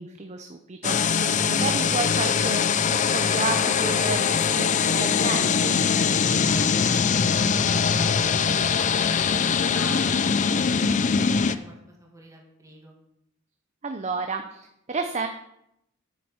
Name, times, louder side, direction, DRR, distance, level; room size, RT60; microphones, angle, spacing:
voice 1, 0.0-5.8 13.8-15.3, right 4 dB, 35° right, 6 dB, 0.7 m, -32 dB
sound 1, 0.8-11.6, left 6 dB, 35° left, 0.5 m, -22 dB
Laughter / Crowd, 2.8-6.3, left 1 dB, 10° left, 1.6 m, -45 dB
voice 2, 6.2-12.9, right 1 dB, 15° right, -1 dB, 2.0 m, -45 dB
9.1 x 7.0 x 6.5 m, 0.79 s
head